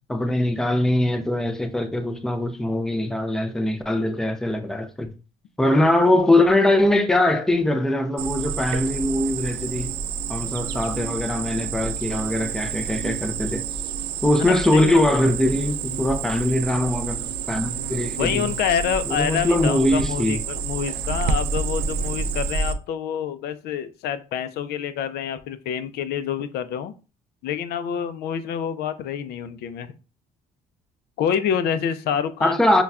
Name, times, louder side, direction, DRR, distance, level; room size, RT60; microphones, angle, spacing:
voice 1, 0.1-5.1 5.6-10.0 10.3-13.7 14.2-18.5 19.0-20.4 32.4-32.8, left 1 dB, 5° left, 0.4 m, -22 dB
Cricket, 8.2-22.7, right 6 dB, 85° right, 0.4 m, -29 dB
voice 2, 14.5-15.0 18.2-26.9 27.4-29.9 31.2-32.6, left 8 dB, 70° left, 0.4 m, -27 dB
5.3 x 2.2 x 2.3 m
cardioid pair, 110°, 17 cm